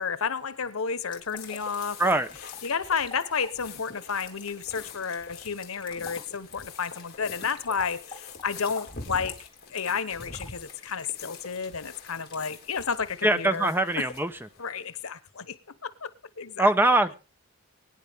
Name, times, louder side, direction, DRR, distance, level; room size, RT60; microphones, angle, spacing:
voice 1, 0.0-2.2 2.6-14.1 14.6-15.6 15.8-16.1 16.4-16.7, left 6 dB, 85° left, 1.1 m, -31 dB
sound 1, 1.1-12.9, left 5 dB, 20° left, 2.6 m, -48 dB
sound 2, 1.4-15.0, left 4 dB, 45° left, 3.5 m, -46 dB
voice 2, 13.2-14.3 16.6-17.2, right 2 dB, 10° right, 0.8 m, -22 dB
23.0 x 9.8 x 3.6 m
head